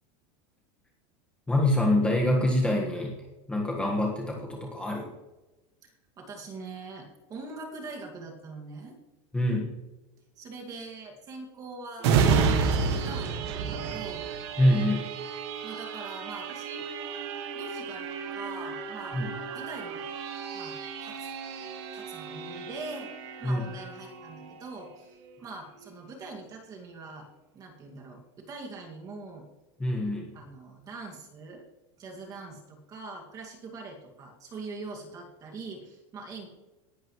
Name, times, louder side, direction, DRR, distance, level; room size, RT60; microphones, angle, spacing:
voice 1, 1.5-3.1 3.5-5.1 9.3-9.7 14.6-15.0 19.1-19.3 23.4-23.6 29.8-30.3, left 1 dB, 5° left, -2 dB, 1.5 m, -25 dB
voice 2, 5.8-9.0 10.4-14.3 15.6-16.9 17.5-19.2 19.5-20.0 20.5-20.8 21.0-21.3 21.9-23.1 23.4-27.3 27.5-29.5 30.3-31.6 32.0-36.5, right 3 dB, 20° right, 1 dB, 2.1 m, -43 dB
sound 1, 12.0-25.3 25.8-25.9, right 5 dB, 60° right, 1.6 m, -31 dB
18.5 x 11.5 x 3.1 m, 1.1 s
supercardioid pair, 175°, 16 cm